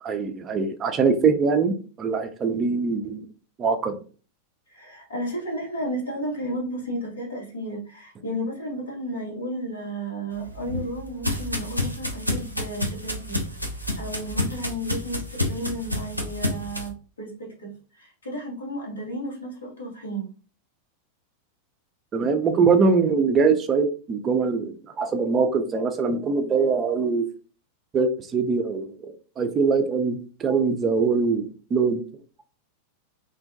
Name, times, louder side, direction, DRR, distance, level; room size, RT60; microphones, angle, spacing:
voice 1, 0.0-3.3 3.6-4.0 22.1-27.2 27.9-32.0, right 5 dB, 25° right, 6 dB, 0.4 m, -23 dB
voice 2, 4.7-13.4 14.0-20.3, right 1 dB, 70° left, -3 dB, 1.1 m, -33 dB
sound 1, 10.3-16.9, left 1 dB, 90° left, 0.5 m, -29 dB
2.5 x 2.1 x 2.6 m, 0.38 s
figure-of-eight pair, 90°, 0 cm